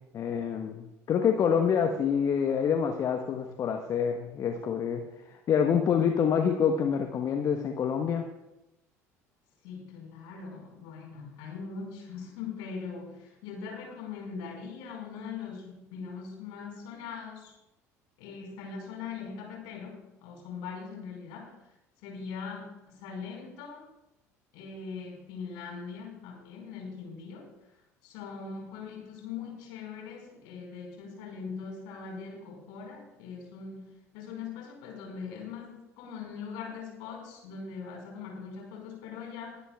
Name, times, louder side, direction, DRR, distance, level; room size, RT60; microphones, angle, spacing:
voice 1, 0.1-8.2, left 7 dB, 40° left, 5 dB, 1.1 m, -27 dB
voice 2, 9.6-17.5 18.2-21.5 22.0-23.9 24.5-27.5 28.0-39.6, left 5 dB, 60° left, 0 dB, 4.8 m, -41 dB
22.0 x 11.5 x 2.4 m, 0.93 s
figure-of-eight pair, 65°, 8 cm